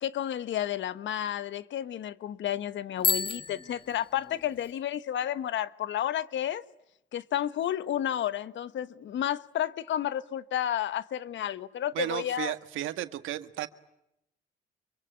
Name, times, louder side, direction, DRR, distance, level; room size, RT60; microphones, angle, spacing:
voice 1, 0.0-6.6 7.1-12.5, left 11 dB, 70° left, 1.3 m, -31 dB
Bicycle bell, 3.0-4.7, left 4 dB, 25° left, 1.8 m, -32 dB
voice 2, 11.9-13.7, right 13 dB, 85° right, 1.7 m, -34 dB
26.5 x 24.0 x 8.9 m
cardioid pair, 90°, 20 cm